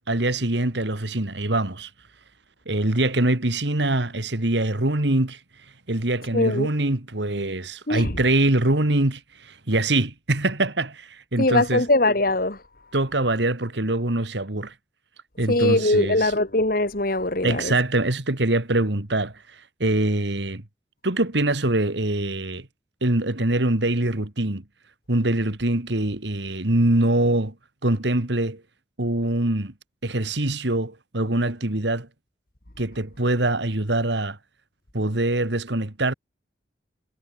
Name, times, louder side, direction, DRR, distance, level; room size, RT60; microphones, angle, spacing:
voice 1, 0.1-1.9 2.7-11.8 12.9-14.7 15.4-16.3 17.4-20.6 21.0-22.7 23.0-24.6 25.1-27.5 27.8-28.6 29.0-29.7 30.0-32.1 32.8-34.4 34.9-36.1, right 2 dB, 70° right, 2.2 m, -24 dB
voice 2, 6.3-6.7 7.9-8.1 11.4-12.6 15.5-17.7, left 2 dB, 50° left, 2.3 m, -21 dB
head